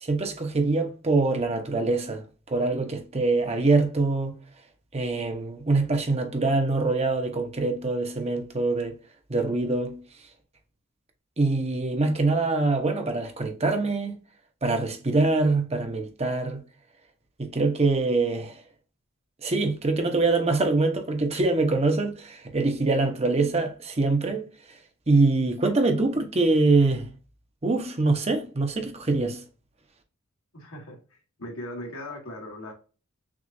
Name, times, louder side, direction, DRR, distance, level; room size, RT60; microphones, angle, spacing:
voice 1, 0.0-4.3 4.9-8.9 9.3-10.0 11.4-14.2 14.6-16.6 17.4-18.6 19.4-24.4 25.1-27.1 27.6-29.4, right 3 dB, 30° right, 0.8 m, -24 dB
voice 2, 30.5-32.7, left 1 dB, 85° left, 1.6 m, -39 dB
6.1 x 2.4 x 2.6 m
head